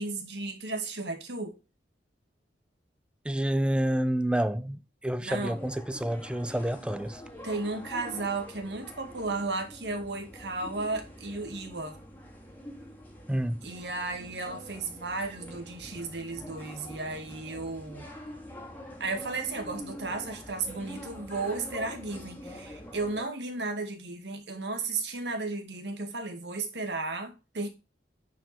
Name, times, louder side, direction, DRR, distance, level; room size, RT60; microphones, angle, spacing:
voice 1, 0.0-1.6 5.2-5.6 7.4-12.0 13.6-18.1 19.0-27.7, right 3 dB, 70° right, 2.1 m, -34 dB
voice 2, 3.2-7.2 13.3-13.7, right 1 dB, 5° right, 0.5 m, -29 dB
sound 1, 5.3-23.3, equal, 10° left, 2.0 m, -45 dB
9.5 x 4.7 x 4.4 m
head